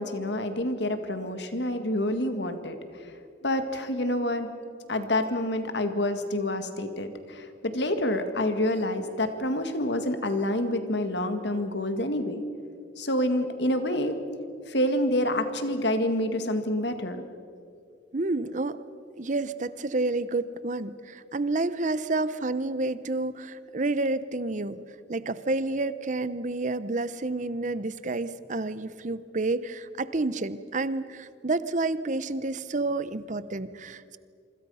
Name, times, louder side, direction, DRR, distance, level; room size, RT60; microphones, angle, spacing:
voice 1, 0.0-2.8 3.4-4.5 4.9-12.4 13.0-14.2 14.7-17.2, left 1 dB, 60° left, 8 dB, 2.0 m, -27 dB
voice 2, 18.1-18.8 19.2-24.8 25.1-34.2, right 2 dB, 40° right, 15 dB, 0.8 m, -29 dB
26.5 x 25.0 x 5.7 m, 2.4 s
head